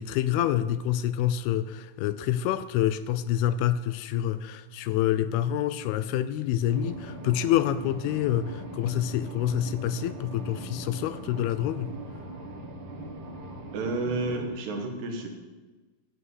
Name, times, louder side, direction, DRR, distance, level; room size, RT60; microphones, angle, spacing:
voice 1, 0.0-11.9, left 11 dB, 80° left, 13 dB, 2.4 m, -27 dB
sound 1, 6.6-14.5, right 1 dB, 65° right, 1.2 m, -40 dB
voice 2, 13.7-15.3, right 3 dB, 85° right, 2 dB, 3.8 m, -30 dB
14.0 x 5.6 x 9.5 m, 1.3 s
omnidirectional pair, 4.6 m